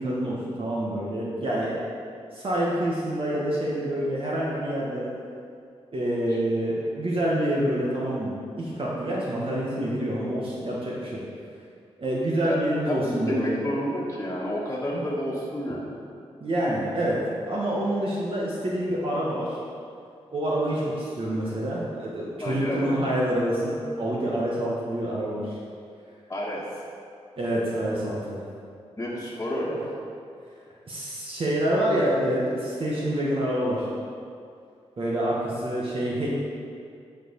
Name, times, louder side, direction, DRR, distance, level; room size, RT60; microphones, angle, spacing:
voice 1, 0.0-1.8 2.3-5.1 5.9-11.2 12.0-13.6 14.9-15.0 16.4-19.6 20.3-25.6 27.4-28.4 30.8-33.9 35.0-36.3, right 1 dB, 55° right, -6 dB, 1.5 m, -27 dB
voice 2, 12.8-16.0 22.4-23.0 26.3-26.6 29.0-30.0, equal, 25° left, -8 dB, 1.5 m, -30 dB
9.8 x 4.8 x 5.2 m, 2.4 s
cardioid pair, 75°, 11 cm